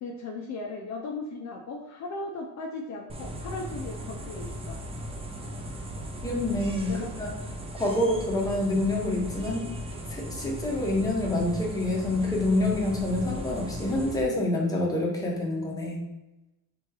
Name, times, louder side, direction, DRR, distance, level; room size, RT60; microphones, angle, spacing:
voice 1, 0.0-4.8 6.9-7.1, left 3 dB, 45° left, 1 dB, 0.5 m, -37 dB
sound 1, 3.1-14.2, right 1 dB, 15° right, 0.4 m, -37 dB
voice 2, 6.2-6.9 7.2-7.3 7.7-9.7 10.1-16.0, left 1 dB, 10° left, -2 dB, 0.8 m, -27 dB
3.4 x 3.0 x 4.7 m, 0.98 s
cardioid pair, 175°, 39 cm